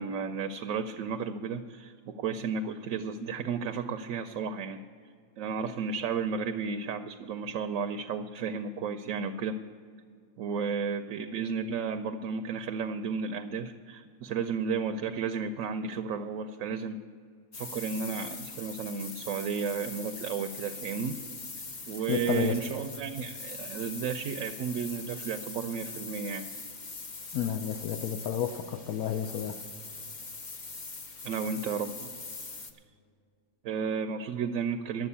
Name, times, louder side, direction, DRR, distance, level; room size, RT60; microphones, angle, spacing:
voice 1, 0.0-4.8 5.4-9.6 10.4-17.0 17.5-21.2 21.9-26.5 31.2-32.1 33.6-35.1, right 6 dB, 70° right, 8 dB, 0.9 m, -33 dB
sound 1, 17.5-32.7, left 3 dB, 40° left, 0.8 m, -42 dB
voice 2, 22.1-22.6 27.3-29.6, left 9 dB, 75° left, 8 dB, 1.0 m, -31 dB
11.0 x 7.7 x 8.4 m, 2.2 s
omnidirectional pair, 1.6 m